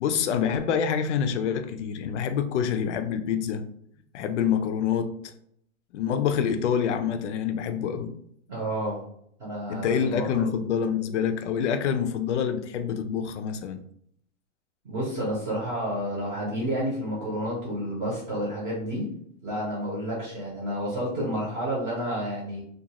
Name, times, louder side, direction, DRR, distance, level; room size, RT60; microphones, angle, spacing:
voice 1, 0.0-3.6 4.1-5.3 5.9-8.1 9.7-13.8, left 7 dB, 65° left, 8 dB, 0.5 m, -26 dB
voice 2, 8.5-9.0 9.4-10.5 14.8-19.1 19.4-22.6, equal, 25° right, -5 dB, 0.7 m, -30 dB
2.5 x 2.3 x 2.8 m, 0.69 s
hypercardioid pair, 160°, 38 cm